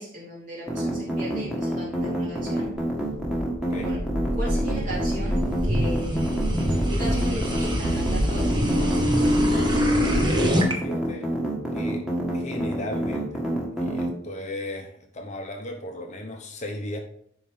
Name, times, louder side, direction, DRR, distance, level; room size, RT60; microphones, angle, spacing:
voice 1, 0.0-2.7 3.8-4.0 4.3-6.5 6.9-9.0, right 1 dB, 40° right, -6 dB, 3.5 m, -36 dB
sound 1, 0.7-14.1, right 1 dB, 5° right, 1.7 m, -27 dB
sound 2, 2.7-10.7, equal, 20° right, 1.2 m, -25 dB
voice 2, 3.6-3.9 10.8-11.3 11.7-12.0 12.3-13.4 13.8-17.0, left 1 dB, 35° left, 3 dB, 0.9 m, -36 dB
10.5 x 4.5 x 3.6 m, 0.66 s
head